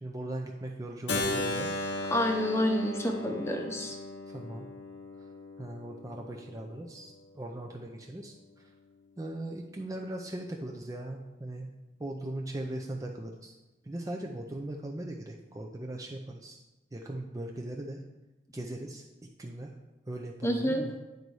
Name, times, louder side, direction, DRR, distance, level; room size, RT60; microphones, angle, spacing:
voice 1, 0.0-1.8 4.3-4.7 5.6-8.7 9.2-11.7 12.0-13.5 13.8-16.6 16.9-18.0 18.5-19.0 19.4-19.7 20.1-20.9, right 1 dB, 20° right, 1 dB, 0.4 m, -39 dB
Keyboard (musical), 1.1-6.9, left 2 dB, 80° left, 0.9 m, -36 dB
voice 2, 2.1-4.0 20.4-20.9, equal, 15° left, 3 dB, 0.7 m, -28 dB
9.3 x 4.0 x 4.7 m, 1.1 s
head